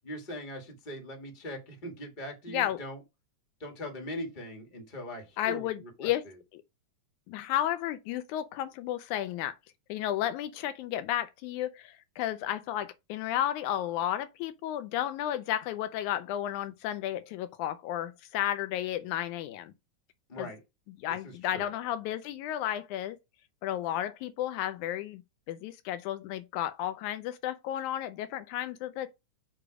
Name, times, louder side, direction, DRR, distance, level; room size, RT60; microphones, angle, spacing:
voice 1, 0.0-3.0 3.6-6.1 20.3-20.6 21.5-21.7, equal, 25° left, 1.2 m, -40 dB
voice 2, 2.5-2.8 5.4-6.2 6.5-6.6 7.3-9.6 9.9-19.7 20.4-20.5 21.0-23.2 23.6-25.2 25.5-29.1, left 12 dB, 85° left, 2.0 m, -33 dB
6.8 x 3.0 x 4.8 m
omnidirectional pair, 3.4 m